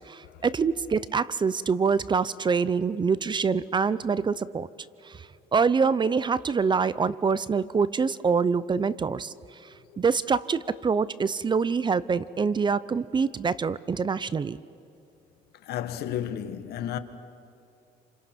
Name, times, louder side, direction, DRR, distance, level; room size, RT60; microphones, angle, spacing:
voice 1, 0.1-4.7 5.1-5.3 5.5-9.3 10.0-14.6, right 5 dB, 25° right, 0.6 m, -25 dB
voice 2, 15.6-17.0, left 10 dB, 70° left, 1.6 m, -32 dB
28.5 x 27.5 x 6.1 m
cardioid pair, 110°, 17 cm